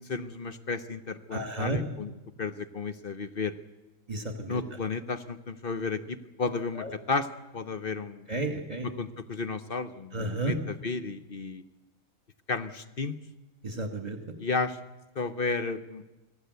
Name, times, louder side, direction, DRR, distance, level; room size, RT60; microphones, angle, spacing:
voice 1, 0.0-2.1 2.4-3.5 4.5-7.3 7.5-8.3 8.8-11.6 12.5-13.2 14.4-14.8 15.2-16.0, left 4 dB, 45° left, 11 dB, 1.0 m, -33 dB
voice 2, 1.3-1.8 4.1-4.6 6.8-6.9 8.3-8.9 10.1-10.6 13.6-14.2, right 2 dB, 30° right, 5 dB, 2.5 m, -32 dB
25.0 x 17.0 x 8.1 m, 1.1 s
omnidirectional pair, 1.4 m